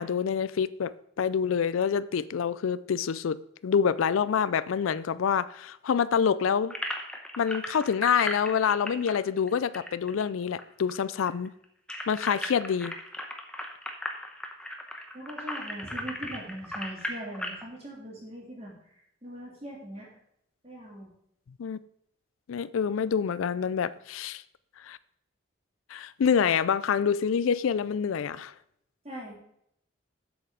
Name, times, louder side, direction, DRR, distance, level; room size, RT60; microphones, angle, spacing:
voice 1, 0.0-6.7 7.4-11.5 12.1-12.9 21.6-21.8 22.5-24.4 24.8-25.0 25.9-28.5, left 7 dB, 80° left, 0.4 m, -27 dB
sound 1, 6.7-10.6 10.9-11.0 11.3-17.6, left 1 dB, 5° left, 0.9 m, -36 dB
voice 2, 15.1-20.1 20.6-21.1 29.0-29.3, equal, 30° right, 3.2 m, -41 dB
7.8 x 7.3 x 4.9 m
head